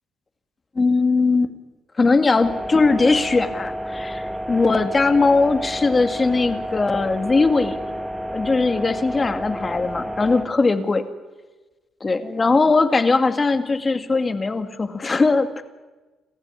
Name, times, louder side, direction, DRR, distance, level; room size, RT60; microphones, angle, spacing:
voice 1, 0.8-1.5 2.0-7.8 8.3-11.0 12.0-15.6, left 3 dB, 30° left, 9 dB, 2.2 m, -20 dB
sound 1, 2.4-10.5, equal, 5° right, 1.9 m, -30 dB
28.0 x 15.0 x 9.8 m, 1.2 s
cardioid pair, 90°, 0 cm